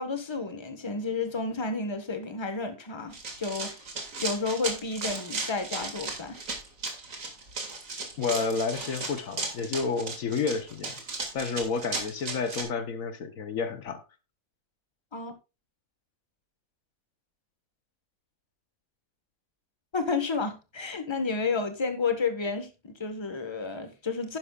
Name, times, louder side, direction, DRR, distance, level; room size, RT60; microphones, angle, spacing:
voice 1, 0.0-3.7 4.2-6.4 15.1-15.3 19.9-24.4, left 4 dB, 20° left, 1.3 m, -31 dB
Run, 3.1-12.6, right 3 dB, 65° right, 2.5 m, -35 dB
voice 2, 8.2-11.0 11.3-14.0, left 4 dB, 70° left, 1.3 m, -30 dB
11.0 x 10.5 x 2.4 m
omnidirectional pair, 1.5 m